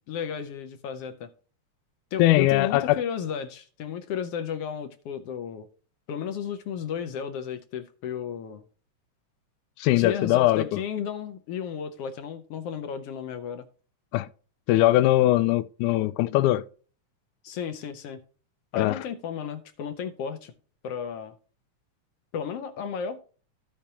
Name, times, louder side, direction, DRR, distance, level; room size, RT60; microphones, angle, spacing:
voice 1, 0.1-1.3 2.1-5.7 6.1-8.6 10.0-13.7 17.4-18.2 18.7-20.5 20.8-21.3 22.3-23.2, left 7 dB, 70° left, 1.5 m, -33 dB
voice 2, 2.2-3.0 9.8-10.8 14.1-14.3 14.7-16.6 18.7-19.0, left 16 dB, 85° left, 2.0 m, -21 dB
15.0 x 5.1 x 2.8 m
omnidirectional pair, 3.4 m